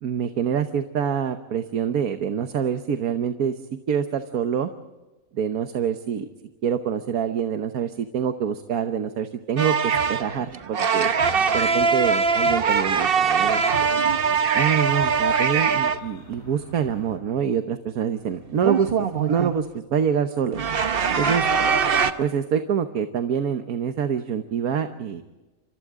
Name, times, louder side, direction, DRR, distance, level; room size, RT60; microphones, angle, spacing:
voice 1, 0.0-3.5 3.9-4.7 5.3-6.3 6.6-11.1 11.5-13.9 14.5-20.6 21.2-21.5 22.2-25.2, right 8 dB, 85° right, 8 dB, 1.5 m, -26 dB
sound 1, 9.6-16.0 18.6-19.6 20.5-22.1, right 6 dB, 45° right, 1.1 m, -22 dB
sound 2, 11.0-17.2, left 1 dB, 50° left, 5.2 m, -48 dB
28.5 x 26.5 x 3.7 m, 1.2 s
omnidirectional pair, 1.5 m